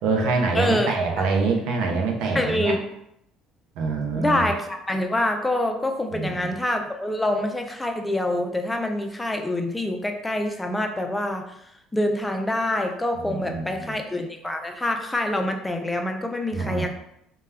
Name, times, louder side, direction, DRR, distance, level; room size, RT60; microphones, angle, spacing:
voice 1, 0.0-2.7 3.8-4.5 6.1-6.5 13.2-13.8 16.5-16.9, right 4 dB, 75° right, 2 dB, 0.5 m, -25 dB
voice 2, 0.5-1.3 2.3-2.8 4.1-11.6 11.9-16.9, left 1 dB, 10° left, 4 dB, 0.3 m, -26 dB
2.1 x 2.1 x 3.3 m, 0.76 s
supercardioid pair, 90°, 0 cm